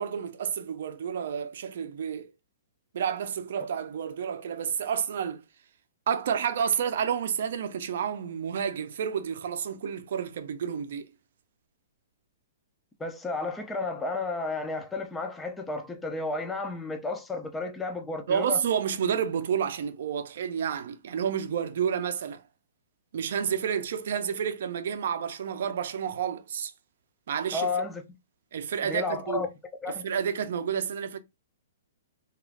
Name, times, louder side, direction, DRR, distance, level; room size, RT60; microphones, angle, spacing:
voice 1, 0.0-2.3 2.9-5.4 6.1-11.1 18.3-22.4 23.1-26.7 27.3-27.7 28.5-29.5 29.9-31.2, right 8 dB, 65° right, 0.4 m, -30 dB
voice 2, 13.0-18.6 27.5-28.0 28.8-29.5 29.8-30.0, left 3 dB, 10° left, 0.4 m, -32 dB
2.4 x 2.4 x 3.2 m
hypercardioid pair, 160°, 0 cm